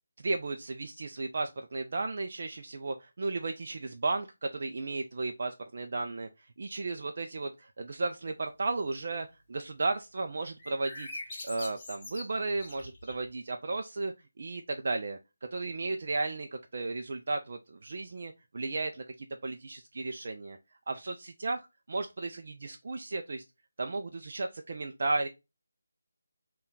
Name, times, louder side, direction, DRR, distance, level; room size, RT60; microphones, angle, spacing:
voice 1, 0.2-11.1 11.4-15.2 15.5-20.6 20.9-21.6 21.9-23.4 23.8-25.3, right 3 dB, 50° right, 5 dB, 0.3 m, -34 dB
sound 1, 10.6-13.3, left 2 dB, 25° left, 1.1 m, -43 dB
3.5 x 2.3 x 3.8 m, 0.25 s
figure-of-eight pair, 155°, 0 cm